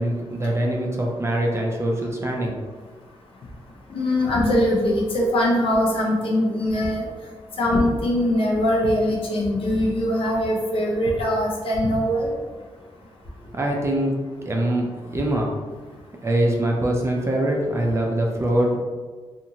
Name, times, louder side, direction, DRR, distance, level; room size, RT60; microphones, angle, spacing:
voice 1, 0.0-2.6 13.4-15.6 16.2-18.8, right 1 dB, 25° right, 0 dB, 0.4 m, -23 dB
voice 2, 3.9-7.0 7.6-12.3, left 1 dB, 65° left, -3 dB, 0.7 m, -22 dB
2.8 x 2.5 x 2.7 m, 1.4 s
wide cardioid pair, 130°, 10 cm